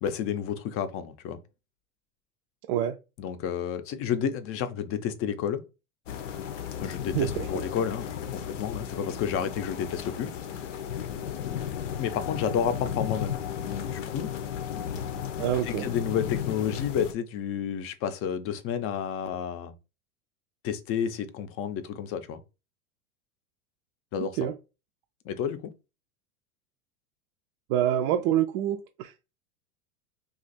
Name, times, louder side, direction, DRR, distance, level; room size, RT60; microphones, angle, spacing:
voice 1, 0.0-1.4 3.2-5.6 6.8-10.3 12.0-14.3 15.7-19.7 20.6-22.4 24.1-24.4 25.2-25.7, left 8 dB, 40° left, 0.5 m, -31 dB
sound 1, 6.1-17.1, left 9 dB, 90° left, 0.7 m, -34 dB
voice 2, 7.1-7.6 15.4-15.9 24.2-24.6 27.7-29.2, right 11 dB, 50° right, 0.4 m, -27 dB
2.5 x 2.4 x 4.0 m
supercardioid pair, 120°, 36 cm